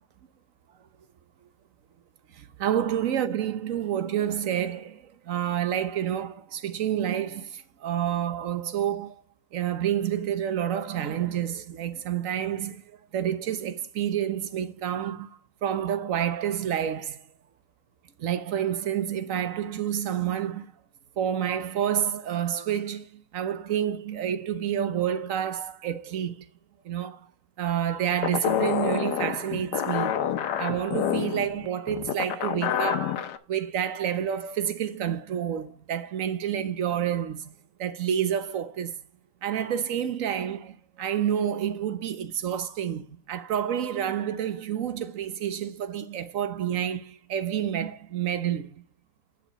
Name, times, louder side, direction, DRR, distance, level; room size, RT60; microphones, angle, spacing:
voice 1, 2.3-9.2 9.5-17.2 18.2-20.7 21.2-26.5 26.8-27.3 27.6-30.3 30.6-37.5 37.8-39.0 39.4-48.8, right 9 dB, 55° right, 1.2 m, -29 dB
sound 1, 28.2-33.4, left 10 dB, 90° left, 1.4 m, -28 dB
9.9 x 6.0 x 5.2 m
omnidirectional pair, 1.8 m